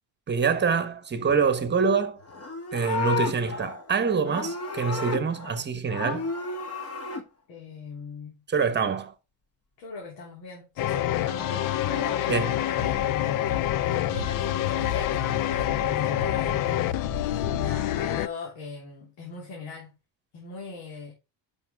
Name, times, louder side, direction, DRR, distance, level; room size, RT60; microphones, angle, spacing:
voice 1, 0.3-2.2 2.7-6.3 8.5-9.1 12.3-12.5, right 5 dB, 25° right, 1.2 m, -25 dB
Livestock farm animals working animals, 2.2-5.6 5.9-7.2 11.0-12.2, left 3 dB, 30° left, 1.7 m, -33 dB
voice 2, 7.5-8.4 9.8-13.1 14.1-16.9 17.4-19.9 20.3-21.1, left 4 dB, 70° left, 3.3 m, -40 dB
sound 1, 10.8-18.3, left 13 dB, 50° left, 0.5 m, -27 dB
sound 2, 12.7-17.8, left 6 dB, 90° left, 4.5 m, -36 dB
10.5 x 5.8 x 3.5 m
cardioid pair, 150°, 45 cm